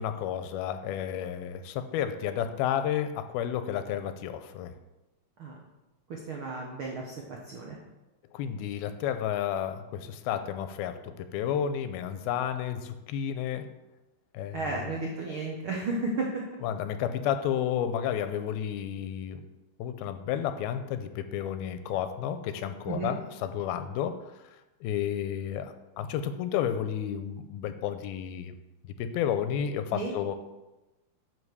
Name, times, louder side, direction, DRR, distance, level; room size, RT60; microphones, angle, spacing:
voice 1, 0.0-4.7 8.3-13.7 14.3-14.7 16.6-19.4 19.8-24.2 24.8-28.5 29.0-30.4, left 9 dB, 90° left, 10 dB, 2.5 m, -31 dB
voice 2, 6.1-7.8 14.5-16.4 22.9-23.2 29.9-30.1, right 3 dB, 75° right, -1 dB, 1.1 m, -33 dB
9.6 x 5.3 x 6.8 m, 1.0 s
omnidirectional pair, 4.3 m